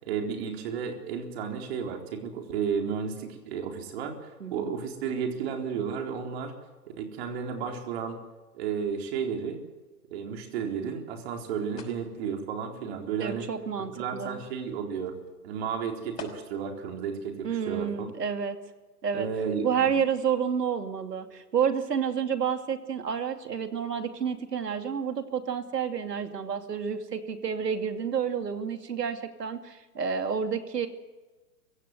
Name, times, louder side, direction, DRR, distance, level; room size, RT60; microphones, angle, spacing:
voice 1, 0.0-6.5 7.0-8.2 8.5-9.6 10.1-13.5 13.9-15.2 15.4-18.1 19.1-20.0, right 6 dB, 40° right, 3 dB, 4.0 m, -33 dB
voice 2, 4.4-4.7 13.2-14.4 17.4-18.6 19.0-19.3 19.6-30.9, right 7 dB, 80° right, 7 dB, 2.6 m, -30 dB
sound 1, 10.4-16.8, left 4 dB, 75° left, 5.8 m, -51 dB
24.5 x 16.0 x 8.0 m, 1.2 s
hypercardioid pair, 140°, 48 cm